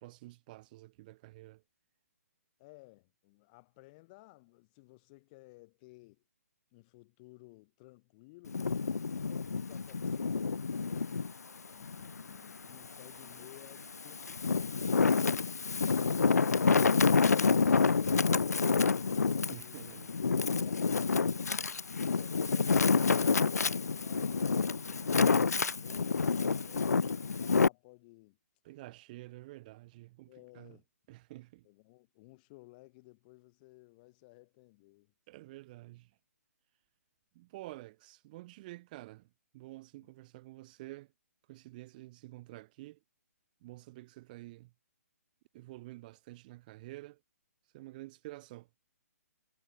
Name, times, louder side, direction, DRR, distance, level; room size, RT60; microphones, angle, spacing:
voice 1, 0.0-1.6 19.5-20.1 28.6-30.8 31.1-31.7 35.3-36.1 37.3-39.3 39.5-41.1 41.5-43.0 43.6-44.7 45.5-47.2 47.7-48.7, right 18 dB, 30° right, 1.0 m, -49 dB
voice 2, 2.6-6.2 6.7-8.6 9.1-11.1 11.7-17.3 19.5-20.0 21.7-28.4 30.3-30.9 31.6-35.1 40.0-40.1, left 24 dB, 30° left, 6.0 m, -57 dB
Wind, 8.5-11.3 11.8-13.1 13.7-27.7, left 5 dB, 80° left, 0.5 m, -28 dB
figure-of-eight pair, 140°, 9 cm